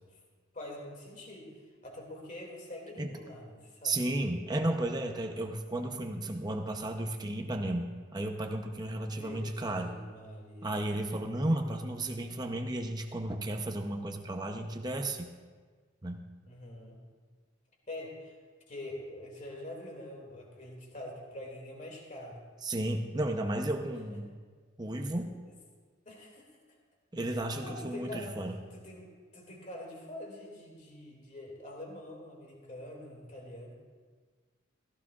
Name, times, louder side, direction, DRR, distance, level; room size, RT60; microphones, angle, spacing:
voice 1, 0.5-4.0 9.1-10.7 16.5-17.0 17.9-18.3 18.7-22.4 24.1-24.2 25.5-25.6 26.1-26.6 27.3-28.4 28.7-33.7, left 1 dB, 40° left, -1 dB, 2.4 m, -45 dB
voice 2, 3.8-10.0 10.6-15.3 16.0-16.2 22.6-24.3 24.8-25.3 27.1-28.6, right 1 dB, 20° right, 4 dB, 0.8 m, -33 dB
16.0 x 14.5 x 2.4 m, 1.5 s
head